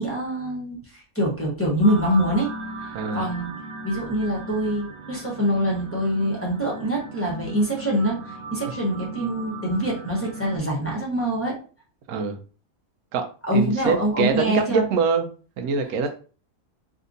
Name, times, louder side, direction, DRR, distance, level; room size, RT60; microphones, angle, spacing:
voice 1, 0.0-2.5 2.8-3.5 3.8-11.6 13.5-14.9, right 1 dB, 10° left, 0.9 m, -24 dB
sound 1, 1.8-10.6, right 2 dB, 50° right, 1.2 m, -37 dB
voice 2, 12.1-12.4 13.1-13.2 13.5-15.3 15.6-16.1, right 5 dB, 85° right, 1.0 m, -24 dB
3.4 x 2.8 x 2.6 m
omnidirectional pair, 1.5 m